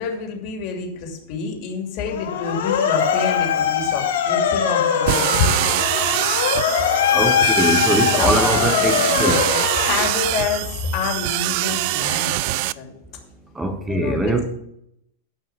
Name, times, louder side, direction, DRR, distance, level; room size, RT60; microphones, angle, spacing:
voice 1, 0.0-5.5 6.0-6.1 6.7-7.0 8.1-12.9 13.9-14.4, left 5 dB, 35° left, 2 dB, 2.7 m, -27 dB
Motor vehicle (road) / Siren, 2.1-10.7, left 8 dB, 85° left, 3.9 m, -21 dB
sound 1, 5.1-12.7, right 18 dB, 40° right, 0.3 m, -23 dB
voice 2, 7.1-9.4 13.6-14.5, right 1 dB, 5° right, 6 dB, 1.0 m, -22 dB
14.5 x 5.4 x 5.9 m, 0.77 s
supercardioid pair, 160°, 0 cm